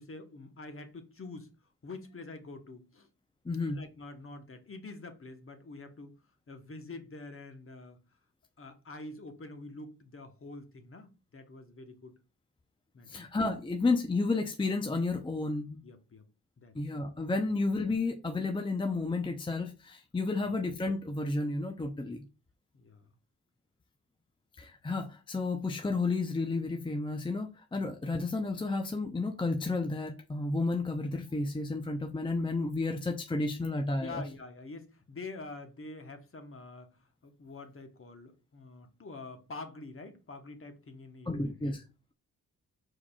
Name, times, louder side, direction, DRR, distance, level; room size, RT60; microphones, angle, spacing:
voice 1, 0.0-1.5 1.8-3.1 3.7-6.1 6.5-8.0 8.6-12.2 12.9-13.2 15.8-16.2 16.6-16.8 20.3-20.5 22.7-23.1 34.0-41.8, left 3 dB, 30° left, 1.0 m, -46 dB
voice 2, 3.5-3.8 13.1-15.8 16.7-22.3 24.6-34.2 41.3-41.8, left 3 dB, 10° left, 0.6 m, -32 dB
4.7 x 4.2 x 2.3 m
hypercardioid pair, 40°, 41 cm